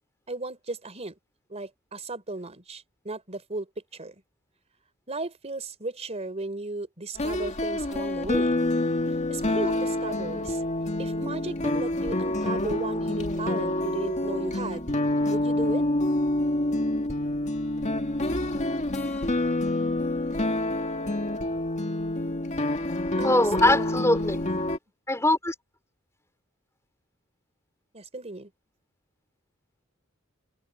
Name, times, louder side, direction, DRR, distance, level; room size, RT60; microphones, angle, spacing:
voice 1, 0.3-1.1 1.5-4.1 5.1-8.6 9.3-10.6 11.0-14.9 15.3-15.9 23.2-23.8 24.5-24.7 27.9-28.5, right 2 dB, 30° right, 3.9 m, -35 dB
sound 1, 7.2-24.8, left 1 dB, 35° left, 2.1 m, -27 dB
voice 2, 23.2-24.4 25.1-25.5, left 1 dB, 15° left, 4.4 m, -22 dB
open air
head